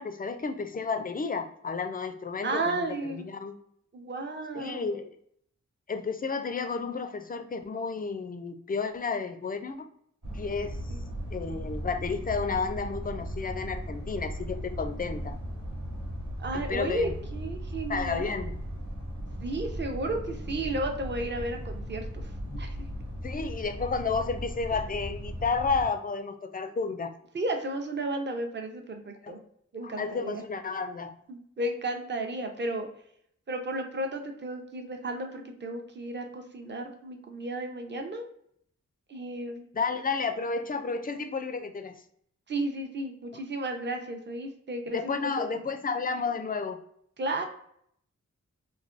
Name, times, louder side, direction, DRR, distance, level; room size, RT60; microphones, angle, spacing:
voice 1, 0.0-3.6 4.5-5.1 5.9-9.9 10.3-10.8 11.3-15.4 16.5-17.1 17.9-18.5 22.5-22.6 23.2-27.1 29.2-29.3 29.8-31.1 39.7-42.0 44.9-46.8, left 4 dB, 30° left, 8 dB, 0.4 m, -32 dB
voice 2, 2.4-3.3 3.9-5.0 10.9-11.0 16.4-18.4 19.4-22.2 22.6-22.8 27.3-29.4 29.7-30.4 31.3-32.9 33.5-38.3 39.1-39.6 42.5-45.0 45.5-45.6 47.2-47.4, right 2 dB, 35° right, 4 dB, 0.6 m, -33 dB
sound 1, 10.2-25.9, equal, 65° right, 1.1 m, -37 dB
3.2 x 2.2 x 2.5 m, 0.68 s
cardioid pair, 50°, 32 cm